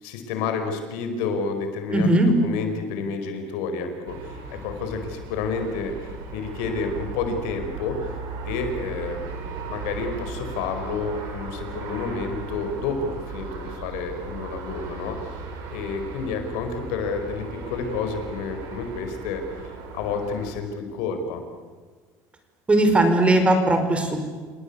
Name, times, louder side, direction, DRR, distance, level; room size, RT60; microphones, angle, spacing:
voice 1, 0.0-8.2 8.4-9.2 9.6-15.4 15.7-21.4, left 4 dB, 90° left, 6 dB, 4.8 m, -30 dB
voice 2, 1.9-2.3 22.7-24.3, right 1 dB, 15° right, 7 dB, 4.8 m, -19 dB
sound 1, 4.1-20.5, right 4 dB, 70° right, 7.2 m, -37 dB
29.5 x 18.5 x 8.4 m, 1.5 s
cardioid pair, 125°, 7 cm